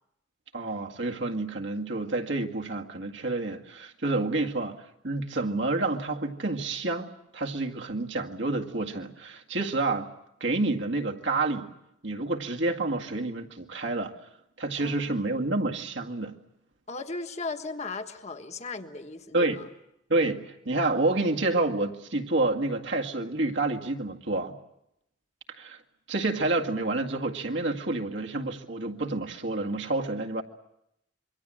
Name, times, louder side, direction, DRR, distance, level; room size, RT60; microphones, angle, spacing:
voice 1, 0.5-4.8 5.0-10.1 10.4-11.7 12.0-14.1 14.6-16.3 19.3-19.6 20.1-24.6 25.6-25.8 26.1-30.4, right 2 dB, 65° right, 2.0 m, -29 dB
voice 2, 14.8-15.3 16.9-19.6, left 3 dB, 35° left, 1.5 m, -37 dB
26.5 x 24.0 x 7.6 m
head